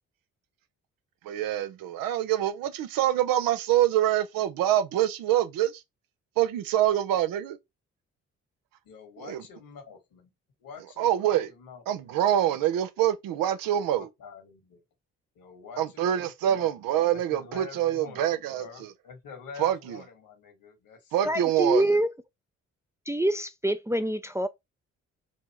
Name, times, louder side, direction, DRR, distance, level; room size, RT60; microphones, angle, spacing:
voice 1, 1.2-5.8 6.4-7.6 9.2-9.4 11.0-11.5 11.9-14.1 15.8-18.9 19.6-20.0 21.1-21.8, right 11 dB, 70° right, 0.7 m, -25 dB
voice 2, 8.9-10.3 10.6-12.6 14.0-14.8 15.3-16.8 17.1-21.4, left 5 dB, 65° left, 1.6 m, -47 dB
voice 3, 21.2-22.1 23.1-24.5, right 1 dB, 10° right, 0.5 m, -25 dB
4.2 x 2.9 x 3.0 m
hypercardioid pair, 45°, 36 cm